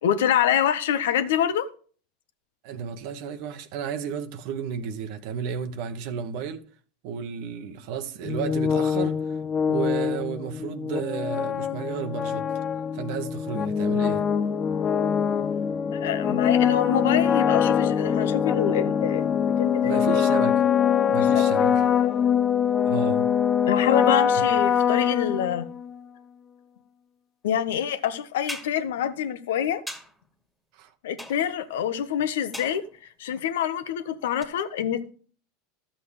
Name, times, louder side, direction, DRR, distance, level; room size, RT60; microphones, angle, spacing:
voice 1, 0.0-1.7 15.9-19.2 19.6-20.2 21.2-21.7 23.7-25.7 27.4-29.8 31.0-32.8 33.2-35.1, left 9 dB, 75° left, 0.9 m, -26 dB
voice 2, 2.6-6.6 7.0-9.4 9.7-12.4 12.9-14.3 19.8-20.6 21.1-21.9 22.9-23.3 30.7-30.9, right 7 dB, 60° right, 1.0 m, -33 dB
sound 1, 8.2-25.9, left 8 dB, 30° left, 0.5 m, -23 dB
sound 2, 28.5-28.8 29.9-30.2 31.2-31.6 32.5-33.0 34.4-34.5, equal, ahead, 1.9 m, -38 dB
12.5 x 7.5 x 3.3 m
hypercardioid pair, 95°, 0 cm